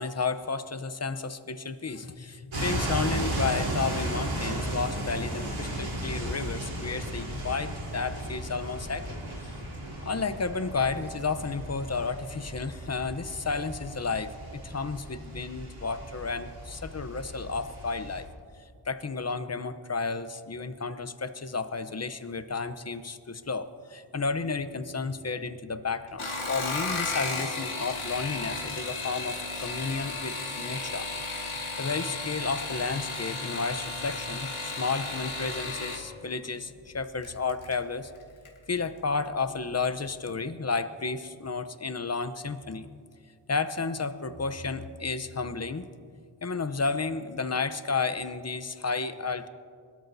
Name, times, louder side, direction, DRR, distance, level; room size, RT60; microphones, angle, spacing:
voice 1, 0.0-9.1 9.4-9.5 10.0-18.3 18.9-31.1 31.8-38.1 38.7-42.9 43.5-45.9 46.4-49.5, left 4 dB, 30° left, 11 dB, 0.8 m, -32 dB
sound 1, 2.5-18.2, right 1 dB, 70° right, 3.9 m, -35 dB
sound 2, 26.1-36.0 37.2-37.7 38.1-38.6 38.8-38.9, left 3 dB, 80° left, 2.1 m, -34 dB
21.5 x 13.0 x 2.7 m, 2.2 s
cardioid pair, 55°, 48 cm